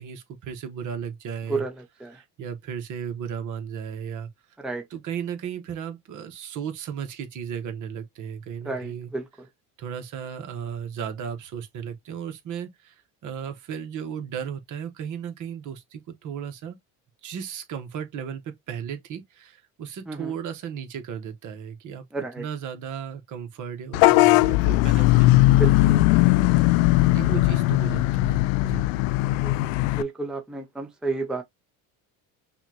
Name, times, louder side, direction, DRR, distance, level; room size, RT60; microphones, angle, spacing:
voice 1, 0.0-1.7 2.1-4.3 4.9-9.1 9.8-16.8 17.2-22.0 22.4-26.7 27.1-28.8, right 8 dB, 50° right, 1.3 m, -35 dB
voice 2, 8.6-9.3 20.1-20.3 22.1-22.4 25.5-25.9 27.3-27.4 29.4-29.5 29.9-31.4, right 3 dB, ahead, 0.7 m, -31 dB
Vehicle horn car horn honking / Bus, 23.9-30.0, left 19 dB, 85° left, 0.5 m, -19 dB
5.6 x 2.5 x 2.9 m
supercardioid pair, 105°, 38 cm